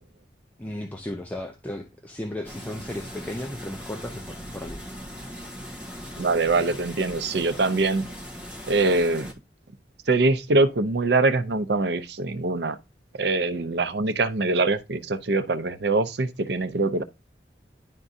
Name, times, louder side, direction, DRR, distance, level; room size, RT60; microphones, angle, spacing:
voice 1, 0.6-4.8, left 1 dB, 10° left, 0.6 m, -35 dB
sound 1, 2.4-9.3, equal, 5° right, 1.4 m, -39 dB
voice 2, 6.2-8.0 8.7-9.3 10.1-12.8 13.2-17.0, right 3 dB, 65° right, 0.6 m, -23 dB
11.0 x 3.7 x 2.6 m
head